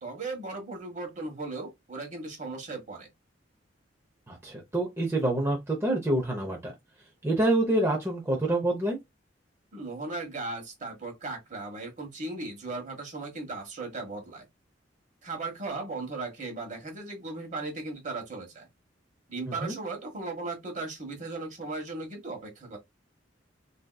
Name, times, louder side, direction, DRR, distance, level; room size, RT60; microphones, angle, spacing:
voice 1, 0.0-3.1 9.7-14.5 15.2-18.7 19.3-22.8, right 3 dB, 40° right, 1.2 m, -37 dB
voice 2, 4.3-6.7 7.2-9.0 19.6-19.7, right 1 dB, 15° right, 0.6 m, -27 dB
3.6 x 2.7 x 2.2 m
head